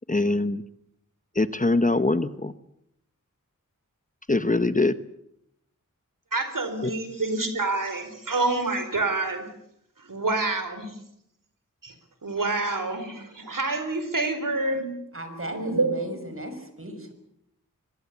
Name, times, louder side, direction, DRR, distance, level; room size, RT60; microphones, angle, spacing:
voice 1, 0.1-0.6 1.4-2.5 4.3-4.9 6.8-6.9, left 2 dB, 25° left, 13 dB, 1.0 m, -23 dB
voice 2, 6.3-9.5 10.0-10.9 11.8-11.9 12.2-14.9 15.5-16.0, right 2 dB, 80° right, 8 dB, 4.5 m, -27 dB
voice 3, 15.1-17.1, right 1 dB, 40° right, 8 dB, 5.8 m, -37 dB
24.0 x 22.0 x 8.5 m, 0.77 s
wide cardioid pair, 80°, 32 cm